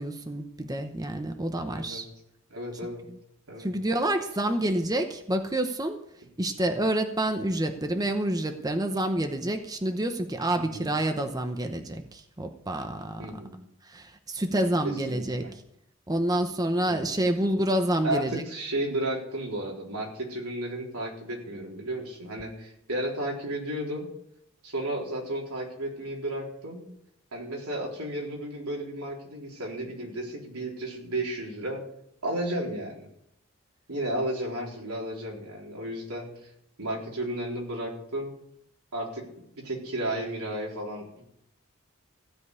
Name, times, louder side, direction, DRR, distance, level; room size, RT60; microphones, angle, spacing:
voice 1, 0.0-2.1 3.6-6.0 6.4-13.3 13.9-15.5 16.1-18.3, right 1 dB, 15° right, 6 dB, 0.8 m, -28 dB
voice 2, 1.6-2.1 2.5-3.1 3.5-3.7 10.5-10.9 13.2-13.5 14.8-15.5 16.9-17.1 18.0-24.1 24.6-26.8 27.3-31.8 32.2-33.1 33.9-36.5 36.8-38.3 38.9-39.3 39.6-41.2, right 1 dB, 90° right, -2 dB, 3.9 m, -33 dB
15.5 x 5.3 x 9.6 m, 0.76 s
head